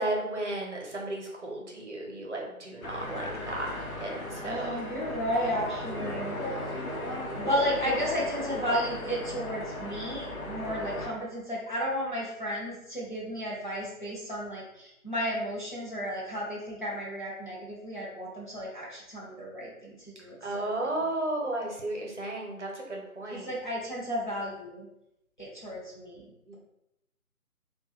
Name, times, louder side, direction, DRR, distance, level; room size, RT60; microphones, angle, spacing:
voice 1, 0.0-4.7 20.4-23.5 26.5-26.6, right 2 dB, 50° right, -1 dB, 0.7 m, -34 dB
sound 1, 2.8-11.1, left 1 dB, 70° left, 0.8 m, -36 dB
voice 2, 4.4-6.4 7.3-20.9 21.9-22.0 23.3-24.9 25.4-26.3, equal, 35° left, -7 dB, 0.6 m, -33 dB
2.6 x 2.2 x 3.0 m, 0.84 s
figure-of-eight pair, 155°, 44 cm